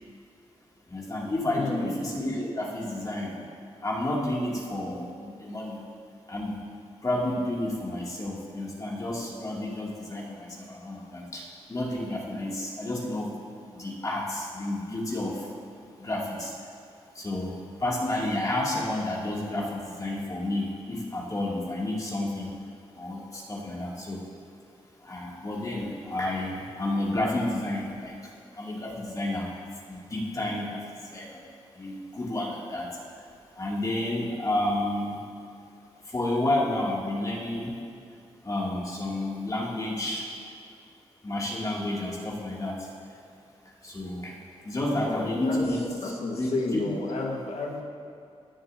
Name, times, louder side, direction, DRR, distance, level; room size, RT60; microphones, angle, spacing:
voice 1, 0.9-3.3 3.8-5.8 6.3-6.6 7.0-13.3 13.7-15.4 16.0-16.5 17.1-17.5 17.8-22.5 23.0-24.2 25.0-28.1 28.6-29.5 29.9-30.8 31.1-31.4 31.8-32.9 33.6-35.2 36.1-37.7 38.4-40.2 41.2-42.7 43.8-44.3 44.6-47.0, left 1 dB, 30° left, -4 dB, 2.5 m, -30 dB
voice 2, 1.5-1.9 44.9-45.6 46.0-47.8, left 3 dB, 70° left, 0 dB, 1.5 m, -31 dB
17.0 x 7.0 x 2.7 m, 2.5 s
cardioid pair, 75°, 11 cm